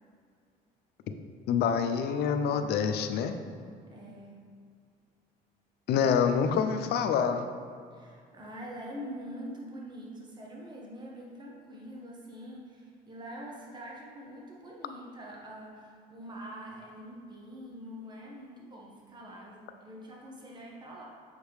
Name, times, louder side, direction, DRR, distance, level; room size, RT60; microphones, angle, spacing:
voice 1, 1.5-3.3 5.9-7.4, left 7 dB, 75° left, 7 dB, 0.5 m, -26 dB
voice 2, 3.9-4.3 7.9-21.0, equal, 25° right, -3 dB, 1.3 m, -44 dB
7.3 x 5.1 x 3.3 m, 2.2 s
cardioid pair, 110°, 17 cm